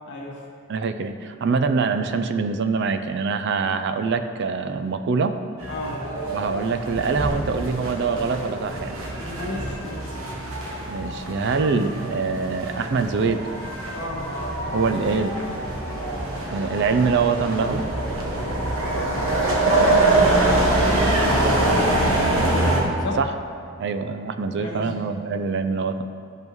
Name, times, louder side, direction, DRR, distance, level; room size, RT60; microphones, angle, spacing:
voice 1, 0.1-0.5 5.7-6.0 9.2-10.2 13.9-14.3 18.8-21.1 23.0-23.2 24.5-25.0, left 1 dB, 55° left, -3 dB, 1.4 m, -32 dB
voice 2, 0.7-5.4 6.3-9.0 10.9-13.5 14.7-15.3 16.5-17.8 23.2-23.3 23.8-26.0, right 4 dB, 55° right, 9 dB, 0.4 m, -24 dB
sound 1, 5.6-22.8, right 2 dB, 75° right, 1.2 m, -24 dB
12.5 x 5.3 x 3.1 m, 2.3 s
head